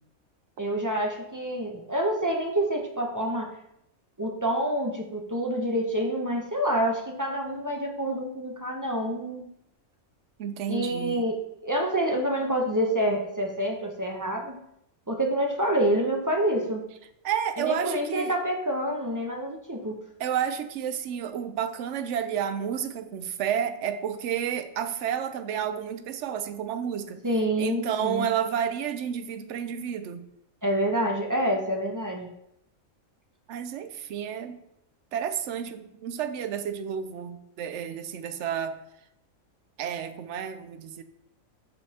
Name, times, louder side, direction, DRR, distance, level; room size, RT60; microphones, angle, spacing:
voice 1, 0.6-3.5 4.2-9.5 10.7-14.6 15.1-16.8 17.6-20.0 27.2-28.3 30.6-32.3, right 1 dB, 20° right, 1 dB, 0.5 m, -27 dB
voice 2, 10.4-11.2 17.2-18.4 20.2-27.2 27.6-30.3 33.5-34.6 35.1-38.8 39.8-41.0, right 8 dB, 65° right, 10 dB, 0.8 m, -31 dB
8.4 x 5.2 x 2.8 m, 0.79 s
omnidirectional pair, 1.4 m